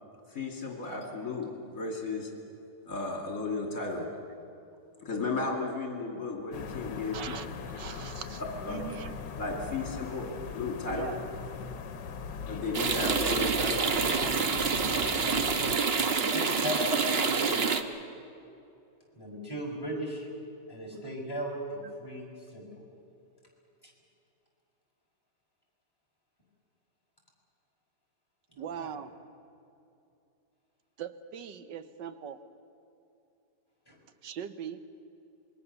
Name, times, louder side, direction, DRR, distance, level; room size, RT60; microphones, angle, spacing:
voice 1, 0.3-2.3 2.8-4.1 5.0-7.2 8.6-8.8 9.4-10.3 10.5-11.1 12.5-13.9, left 3 dB, 50° left, 1 dB, 3.3 m, -34 dB
sound 1, 6.5-15.8, left 5 dB, 80° left, 1.8 m, -40 dB
voice 2, 7.1-9.2 10.0-10.1 10.9-11.2 28.6-29.1 31.0-32.4 34.2-34.8, right 8 dB, 85° right, 11 dB, 1.6 m, -41 dB
sound 2, 12.7-17.8, right 5 dB, 40° right, 1.1 m, -27 dB
voice 3, 14.8-15.4 15.9-17.7 19.1-20.3 20.7-22.8 28.5-28.9 33.9-34.0, equal, 10° left, -3 dB, 5.4 m, -38 dB
26.5 x 21.5 x 6.8 m, 2.7 s
omnidirectional pair, 1.9 m